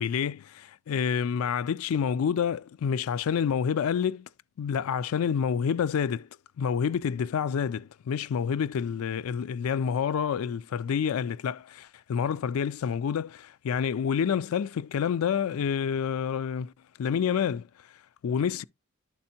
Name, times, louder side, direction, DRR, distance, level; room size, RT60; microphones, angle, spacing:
voice 1, 0.0-4.3 4.6-6.3 6.6-16.7 17.0-17.7 18.2-18.6, left 7 dB, 80° left, 0.3 m, -28 dB
11.5 x 4.3 x 2.8 m
head